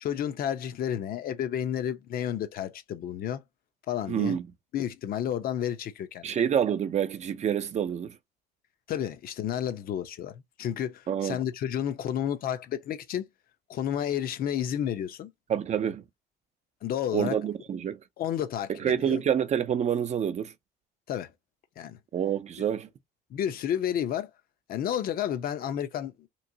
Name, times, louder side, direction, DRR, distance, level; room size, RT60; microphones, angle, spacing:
voice 1, 0.0-3.4 3.9-4.4 4.7-6.3 8.9-13.3 13.7-15.3 16.8-17.4 18.2-19.2 21.1-21.3 21.8-22.0 23.3-24.3 24.7-26.3, left 10 dB, 60° left, 0.7 m, -31 dB
voice 2, 4.1-4.4 6.2-8.2 11.1-11.4 15.5-16.0 17.1-18.0 18.8-20.5 22.1-22.9, right 8 dB, 45° right, 0.6 m, -27 dB
3.1 x 2.9 x 2.7 m
cardioid pair, 110°, 17 cm